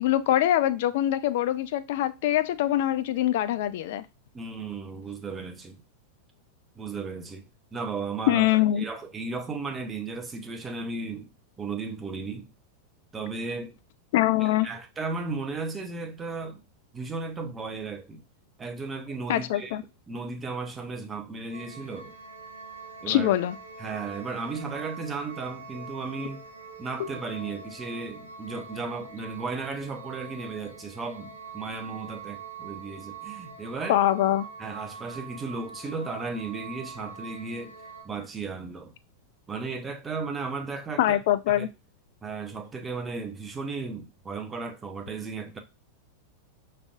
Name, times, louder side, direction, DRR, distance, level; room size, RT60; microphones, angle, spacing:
voice 1, 0.0-4.1 8.3-8.8 14.1-14.7 19.3-19.8 23.1-23.5 33.9-34.5 41.0-41.7, left 13 dB, 50° left, 0.3 m, -23 dB
voice 2, 4.3-5.8 6.8-7.4 7.7-11.3 11.6-12.5 13.1-13.8 14.4-16.6 16.9-18.2 18.6-19.8 20.1-22.1 23.0-23.3 23.8-26.4 26.8-34.0 34.6-37.8 38.0-38.9 39.5-41.2 41.6-41.7 42.2-45.6, right 4 dB, 20° right, 0.7 m, -35 dB
sound 1, 21.5-38.0, right 4 dB, 85° right, 0.9 m, -44 dB
5.0 x 3.3 x 2.4 m
figure-of-eight pair, 90°, 0 cm